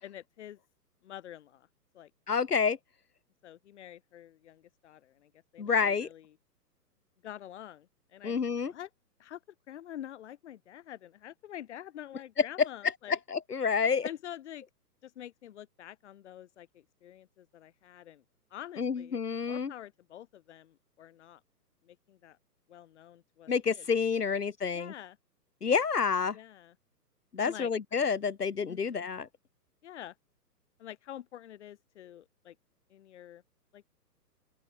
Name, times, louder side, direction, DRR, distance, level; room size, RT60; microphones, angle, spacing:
voice 1, 0.0-0.6 1.0-1.7 1.9-2.1 3.4-6.3 7.2-8.3 8.7-8.9 9.2-9.4 9.7-13.2 14.0-14.6 15.0-18.2 18.5-19.2 19.5-21.4 21.8-22.4 22.7-23.8 24.3-24.4 24.7-25.2 26.3-26.7 27.4-27.7 28.7-29.1 29.8-30.1 30.8-32.5 32.9-33.4 33.7-33.8, left 11 dB, 45° left, 4.8 m, -47 dB
voice 2, 2.3-2.8 5.6-6.1 8.2-8.7 12.4-12.5 13.1-14.1 18.8-19.7 23.5-24.9 25.6-26.4 27.3-29.3, left 6 dB, 70° left, 1.7 m, -29 dB
open air
figure-of-eight pair, 125°, 49 cm